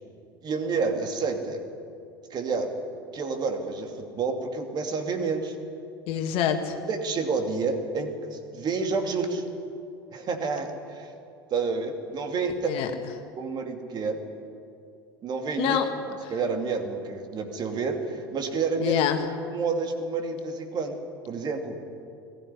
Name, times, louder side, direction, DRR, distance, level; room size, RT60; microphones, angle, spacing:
voice 1, 0.4-1.6 2.3-2.7 3.1-5.5 6.9-9.4 10.1-11.1 11.5-12.7 13.4-14.2 15.2-15.8 16.3-19.0 19.5-21.0 21.3-21.8, right 4 dB, 35° right, 5 dB, 2.6 m, -29 dB
voice 2, 6.1-6.7 12.7-12.9 15.6-15.9 16.2-16.3 18.8-19.2, left 9 dB, 50° left, 6 dB, 1.9 m, -25 dB
21.0 x 14.0 x 9.8 m, 2.5 s
figure-of-eight pair, 75°, 12 cm